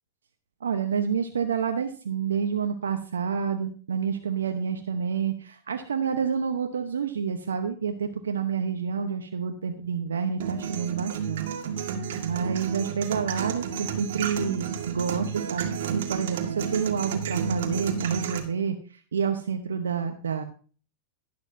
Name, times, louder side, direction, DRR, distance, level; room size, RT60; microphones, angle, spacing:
voice 1, 0.6-11.5 12.2-20.4, right 6 dB, 90° right, 5 dB, 0.9 m, -28 dB
sound 1, 10.4-18.4, right 7 dB, 70° right, 1.8 m, -31 dB
11.5 x 11.5 x 2.7 m, 0.40 s
hypercardioid pair, 105°, 0 cm